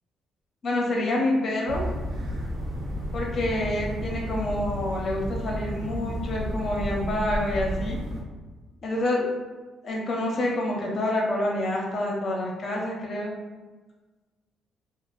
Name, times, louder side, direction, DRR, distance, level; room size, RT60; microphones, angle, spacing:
voice 1, 0.6-1.8 3.1-8.0 8.8-9.3 9.8-13.3, left 1 dB, 45° left, -1 dB, 0.7 m, -27 dB
sound 1, 1.7-8.2, equal, 65° right, 0.6 m, -32 dB
3.3 x 2.0 x 2.3 m, 1.3 s
cardioid pair, 110°, 0 cm